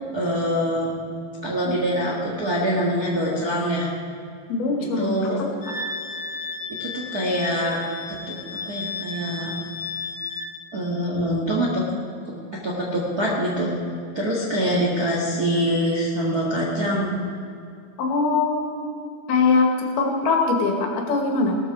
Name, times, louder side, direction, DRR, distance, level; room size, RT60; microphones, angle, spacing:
voice 1, 0.1-0.9 1.4-3.9 5.0-5.4 6.8-7.8 8.1-8.4 8.7-9.5 10.7-11.8 12.2-12.3 12.6-13.7 14.1-17.2, equal, 40° right, -4 dB, 1.4 m, -24 dB
voice 2, 4.5-5.5 18.0-18.9 19.3-21.6, left 4 dB, 75° left, 1 dB, 3.8 m, -22 dB
Wind instrument woodwind instrument, 5.6-10.5, left 3 dB, 40° left, 3.2 m, -33 dB
18.0 x 13.0 x 4.8 m, 2.5 s
omnidirectional pair, 4.4 m